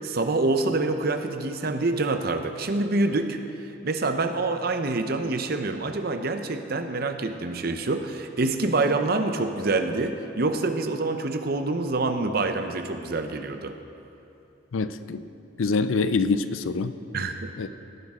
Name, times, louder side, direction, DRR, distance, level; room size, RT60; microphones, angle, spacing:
voice 1, 0.0-3.4 3.8-13.7 17.1-17.5, right 3 dB, 50° right, 7 dB, 0.7 m, -26 dB
voice 2, 14.7-15.3 15.6-16.9 17.6-17.7, left 4 dB, 85° left, 12 dB, 0.5 m, -25 dB
17.5 x 10.5 x 3.7 m, 3.0 s
head